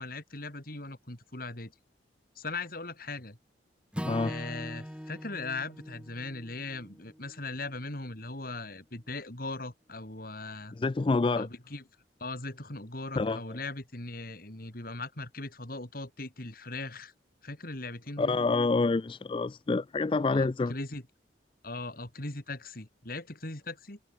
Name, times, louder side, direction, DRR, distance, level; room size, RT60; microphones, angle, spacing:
voice 1, 0.0-1.7 2.4-3.4 4.2-10.7 11.4-11.8 12.2-17.1 17.4-18.4 20.3-21.0 21.6-24.0, left 3 dB, 55° left, 3.7 m, -39 dB
Acoustic guitar / Strum, 3.9-8.2, equal, 5° right, 5.8 m, -42 dB
voice 2, 10.7-11.5 13.2-13.6 18.2-20.7, left 3 dB, 30° left, 0.4 m, -27 dB
head